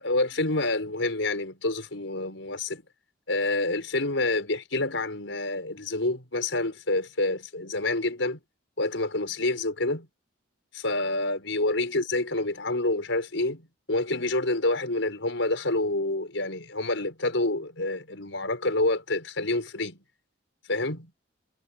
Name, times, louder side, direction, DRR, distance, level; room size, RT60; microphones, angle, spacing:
voice 1, 0.0-2.8 3.3-8.4 8.8-10.1 10.7-20.0 20.7-21.1, left 2 dB, 80° left, 5.2 m, -28 dB
head